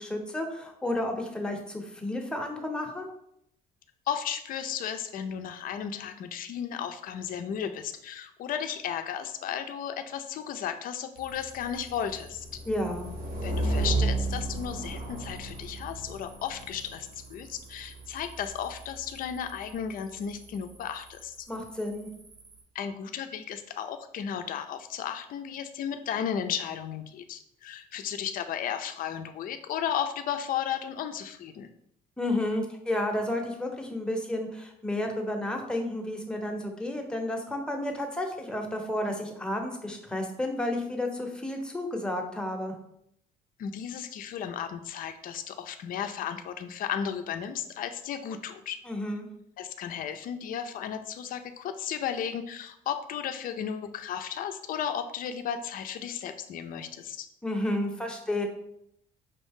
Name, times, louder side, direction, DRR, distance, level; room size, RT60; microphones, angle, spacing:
voice 1, 0.0-3.1 12.7-13.1 21.5-22.1 32.2-42.8 48.8-49.3 57.4-58.5, left 1 dB, 5° left, 2 dB, 0.8 m, -31 dB
voice 2, 4.1-12.6 13.4-21.5 22.7-31.7 43.6-48.8 49.6-57.3, left 8 dB, 55° left, 8 dB, 0.5 m, -34 dB
sound 1, 11.2-22.6, right 2 dB, 50° right, 1.0 m, -35 dB
5.3 x 2.6 x 3.6 m, 0.75 s
cardioid pair, 110°, 17 cm